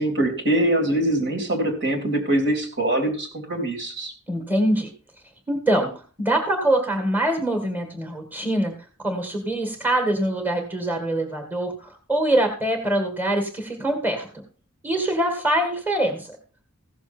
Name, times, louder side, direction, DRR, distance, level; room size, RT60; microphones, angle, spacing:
voice 1, 0.0-4.1, right 1 dB, 55° right, 2 dB, 3.1 m, -23 dB
voice 2, 4.3-4.9 5.5-5.9 6.2-8.7 9.0-14.3 14.8-16.4, right 1 dB, 10° right, 4 dB, 2.0 m, -24 dB
15.5 x 6.9 x 4.4 m, 0.39 s
head